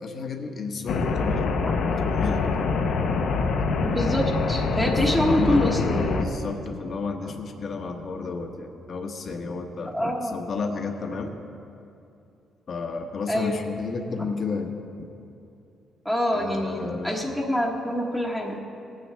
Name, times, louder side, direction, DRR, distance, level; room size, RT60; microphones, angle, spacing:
voice 1, 0.0-1.6 2.0-2.5 5.1-5.7 6.2-9.9 10.3-11.3 12.7-14.7 16.3-17.2, left 4 dB, 50° left, 5 dB, 1.2 m, -32 dB
sound 1, 0.9-6.2, left 4 dB, 70° left, 0.9 m, -25 dB
voice 2, 3.8-6.3 9.9-10.4 13.3-13.6 16.0-18.6, equal, 5° right, -1 dB, 1.3 m, -25 dB
18.0 x 9.3 x 3.5 m, 2.7 s
cardioid pair, 90°, 0 cm